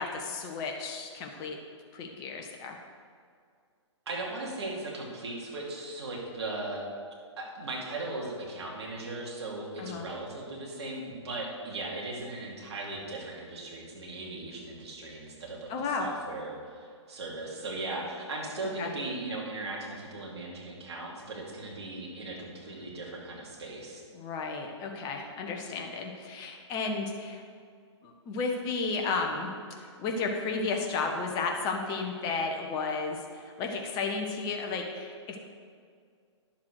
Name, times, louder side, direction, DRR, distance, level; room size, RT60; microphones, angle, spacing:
voice 1, 0.0-1.6 1.9-2.8 9.8-10.1 15.7-16.0 18.8-18.9 24.1-27.4 28.0-29.5 29.8-35.4, left 4 dB, 25° left, 2 dB, 1.1 m, -33 dB
voice 2, 4.1-6.8 7.4-24.0, right 2 dB, 60° right, -3 dB, 2.7 m, -38 dB
10.5 x 7.3 x 4.8 m, 2.2 s
figure-of-eight pair, 120°, 16 cm